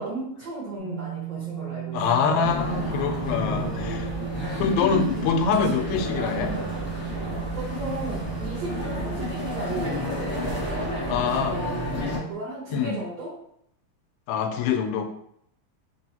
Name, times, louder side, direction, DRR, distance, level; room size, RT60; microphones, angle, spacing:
voice 1, 0.0-2.5 4.0-4.3 4.7-5.4 7.5-13.3, right 1 dB, 70° right, -6 dB, 1.6 m, -36 dB
sound 1, 0.8-12.3, right 16 dB, 70° left, 0.6 m, -36 dB
voice 2, 1.9-4.1 4.6-6.6 11.1-11.6 12.7-13.0 14.3-15.1, left 6 dB, 90° left, 6 dB, 2.3 m, -25 dB
sound 2, 2.4-12.2, left 2 dB, 45° left, 0.9 m, -31 dB
5.0 x 3.0 x 2.8 m, 0.71 s
omnidirectional pair, 4.0 m